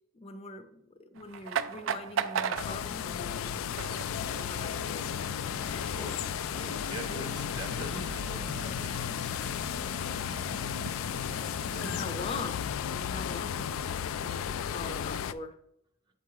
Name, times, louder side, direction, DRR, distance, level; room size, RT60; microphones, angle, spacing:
voice 1, 0.1-3.5 4.2-5.0 10.0-10.4 11.8-12.6 12.9-13.8 14.2-15.6, left 3 dB, 30° left, 7 dB, 0.6 m, -42 dB
sound 1, 1.1-12.3, right 7 dB, 70° right, 0.4 m, -40 dB
sound 2, 2.6-15.3, left 8 dB, 90° left, 0.3 m, -34 dB
sound 3, 4.2-11.7, equal, 45° right, 1.1 m, -47 dB
voice 2, 5.9-9.1 11.1-11.9 14.3-14.4, equal, 20° right, 5 dB, 0.7 m, -43 dB
7.6 x 3.1 x 4.7 m, 0.77 s
head